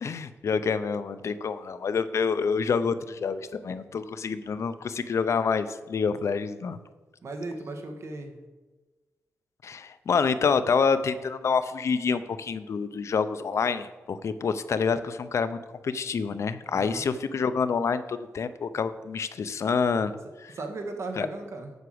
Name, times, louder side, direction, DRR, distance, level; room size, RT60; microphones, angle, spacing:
voice 1, 0.0-6.8 9.6-15.6 15.8-20.5 21.2-21.3, left 5 dB, 65° left, 12 dB, 0.6 m, -27 dB
voice 2, 7.2-8.4 16.7-17.0 20.5-21.7, right 2 dB, 60° right, 4 dB, 1.5 m, -36 dB
8.0 x 6.0 x 7.9 m, 1.2 s
wide cardioid pair, 105°, 5 cm